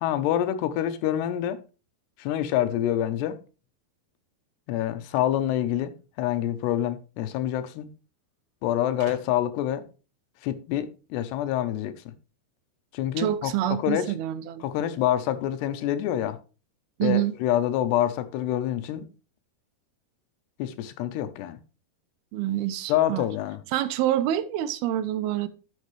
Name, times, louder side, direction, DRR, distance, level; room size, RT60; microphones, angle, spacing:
voice 1, 0.0-1.6 2.2-3.4 4.7-5.9 6.2-7.9 8.6-9.8 10.4-11.9 12.9-14.1 14.6-16.4 17.0-19.1 20.6-21.6 22.9-23.6, left 11 dB, 85° left, 3.0 m, -26 dB
sound 1, 5.1-6.5 7.6-7.7 7.9-8.0 9.0-9.6, right 5 dB, 55° right, 3.4 m, -48 dB
voice 2, 13.2-14.7 17.0-17.3 22.3-23.3 23.7-25.5, right 12 dB, 80° right, 2.4 m, -26 dB
12.0 x 7.1 x 3.2 m
omnidirectional pair, 4.7 m